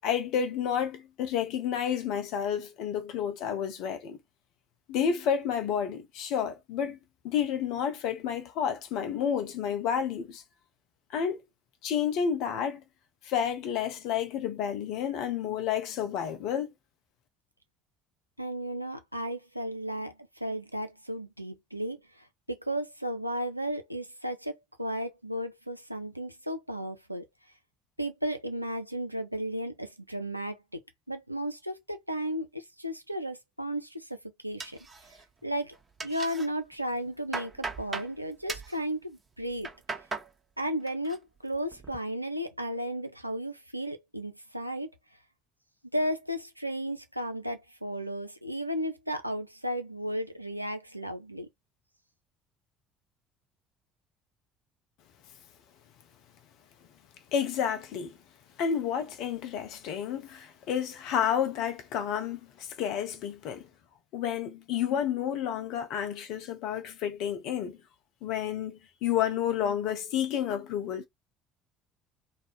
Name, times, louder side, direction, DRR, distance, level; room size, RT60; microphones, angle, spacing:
voice 1, 0.0-4.2 4.9-7.0 7.2-10.4 11.1-11.4 11.8-12.8 13.2-16.7 57.3-58.2 58.6-63.7 64.1-67.8 68.2-71.1, left 8 dB, 55° left, 0.6 m, -30 dB
voice 2, 18.4-27.3 28.0-30.8 31.1-34.2 34.4-34.8 35.4-35.8 36.0-39.7 40.6-44.9 45.9-51.5, equal, 90° right, 0.3 m, -34 dB
sound 1, 34.6-35.4 35.7-36.5 36.9-38.1 38.5-38.8 39.4-40.3 40.7-41.2 41.5-42.0, right 3 dB, 25° right, 0.9 m, -38 dB
2.4 x 2.1 x 3.0 m
figure-of-eight pair, 55°, 0 cm